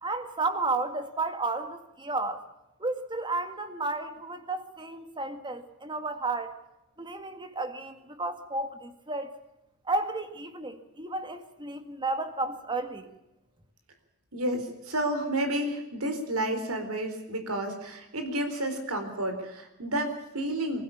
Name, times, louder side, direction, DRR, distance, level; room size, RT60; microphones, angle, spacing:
voice 1, 0.0-2.4 2.8-6.6 7.0-9.3 9.9-13.1, right 3 dB, 20° right, 7 dB, 2.0 m, -32 dB
voice 2, 14.3-20.8, right 1 dB, 80° right, 7 dB, 4.2 m, -31 dB
24.0 x 16.0 x 7.2 m, 0.92 s
head